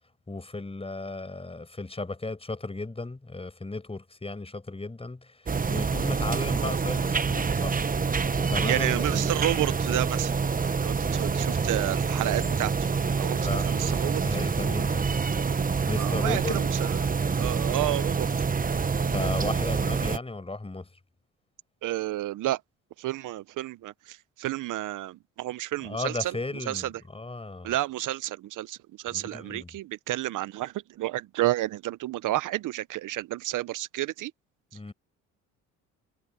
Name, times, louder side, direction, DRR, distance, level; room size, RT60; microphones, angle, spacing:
voice 1, 0.3-5.4 5.7-7.8 8.4-9.3 13.4-15.0 15.9-16.6 19.1-20.9 25.8-27.7 29.1-29.7 34.7-34.9, left 2 dB, 15° left, 6.0 m, -35 dB
sound 1, 5.5-20.2, right 5 dB, 25° right, 1.2 m, -26 dB
voice 2, 8.6-10.3 10.8-12.7 13.2-14.2 15.9-17.1 17.4-18.3 21.8-22.6 23.0-26.4 26.7-26.9 27.6-34.3, right 15 dB, 65° right, 0.9 m, -31 dB
supercardioid pair, 70°, 34 cm